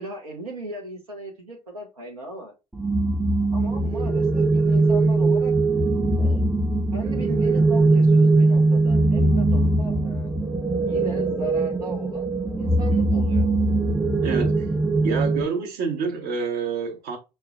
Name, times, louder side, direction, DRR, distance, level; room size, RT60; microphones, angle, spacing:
voice 1, 0.0-2.5 3.5-5.5 6.2-6.4 6.9-10.4 10.9-12.3 12.6-13.5, right 1 dB, 85° right, 0.6 m, -37 dB
sound 1, 2.7-15.5, right 2 dB, 5° right, 0.4 m, -21 dB
voice 2, 14.2-14.7 15.0-17.2, right 5 dB, 55° right, 0.9 m, -27 dB
5.3 x 2.0 x 2.4 m
figure-of-eight pair, 55°, 19 cm